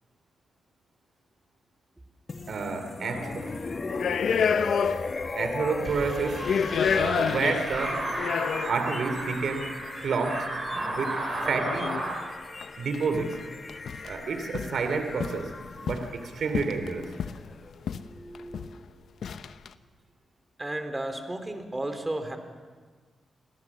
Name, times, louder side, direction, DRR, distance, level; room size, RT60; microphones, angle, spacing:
sound 1, 2.3-18.2, left 3 dB, 40° left, 1.7 m, -38 dB
voice 1, 2.5-3.6 5.3-6.5 6.9-8.1 8.6-9.7 10.0-10.5 10.9-12.0 12.8-13.4 14.0-15.5 15.8-17.1, right 4 dB, 70° right, 7 dB, 2.9 m, -30 dB
sound 2, 3.1-3.4 3.9-5.3 5.6-5.7 6.3-8.9 9.8-9.9 11.6-12.1 12.6-12.7 12.9-13.4 13.7-14.1 14.5-14.8 15.2-16.1 16.5-17.5 17.9-18.1 18.3-18.8 19.2-19.7, left 7 dB, 75° left, 0.9 m, -29 dB
sound 3, 5.8-12.2, right 2 dB, 45° right, 7.4 m, -34 dB
voice 2, 17.0-17.4 17.9-19.3 20.6-22.4, right 1 dB, 20° right, 7 dB, 3.4 m, -35 dB
27.5 x 18.0 x 7.3 m, 1.5 s
cardioid pair, 65°, 0 cm